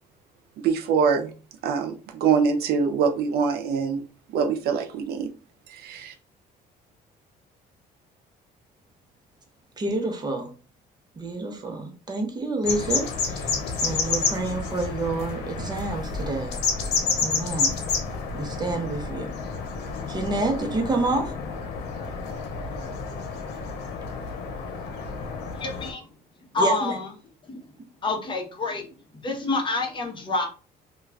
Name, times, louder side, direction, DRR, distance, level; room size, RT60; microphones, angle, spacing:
voice 1, 0.6-1.3 1.6-4.0 4.3-5.3 5.7-6.1, right 6 dB, 65° right, 7 dB, 0.4 m, -24 dB
voice 2, 9.8-10.5 11.2-13.5 13.8-16.5 17.2-17.7 18.3-19.3 20.1-21.3 26.6-27.0, right 2 dB, 25° right, 4 dB, 0.7 m, -28 dB
sound 1, 12.6-25.9, left 4 dB, 85° left, 0.7 m, -30 dB
voice 3, 25.6-26.0 26.5-27.1 27.5-27.6 28.0-28.9 29.2-30.5, left 3 dB, 30° left, 2 dB, 0.8 m, -27 dB
2.3 x 2.3 x 3.2 m, 0.36 s
cardioid pair, 110°, 17 cm